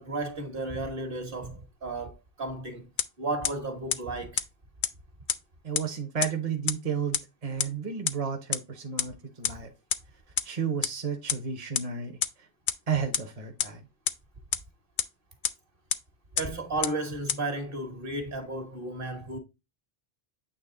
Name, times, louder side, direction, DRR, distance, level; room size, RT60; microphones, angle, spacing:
voice 1, 0.0-2.9 3.2-4.4 16.4-19.4, right 2 dB, 60° right, 1.7 m, -33 dB
sound 1, 3.0-3.1 3.4-3.5 3.9-4.0 4.4-4.5 4.8-4.9 5.3-5.4 5.8-5.9 6.2-6.3 6.7-6.8 7.1-7.2 7.6-7.7 8.1-8.2 8.5-8.6 9.0-9.1 9.4-9.5 9.9-10.0 10.4-10.5 10.8-10.9 11.3-11.4 11.8-11.9 12.2-12.3 12.7-12.8 13.1-13.2 13.6-13.7 14.1-14.2 14.5-14.6 15.0-15.1 15.4-15.5 15.9-16.0 16.4-16.5 16.8-16.9 17.3-17.4, left 8 dB, 60° left, 0.7 m, -25 dB
voice 2, 5.6-9.7 10.4-12.2 12.9-13.8, right 6 dB, 40° right, 1.0 m, -32 dB
8.6 x 3.1 x 3.7 m
omnidirectional pair, 1.1 m